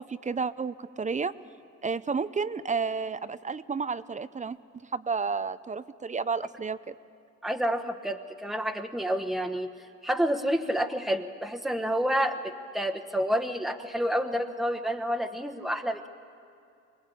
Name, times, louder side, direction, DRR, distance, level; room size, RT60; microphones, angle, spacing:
voice 1, 0.0-1.3 1.8-4.6 4.9-7.0, right 5 dB, 25° right, 15 dB, 0.5 m, -31 dB
voice 2, 7.4-9.7 10.0-12.4 12.7-16.1, equal, ahead, 6 dB, 1.1 m, -29 dB
25.0 x 19.0 x 8.4 m, 2.5 s
cardioid pair, 90°, 30 cm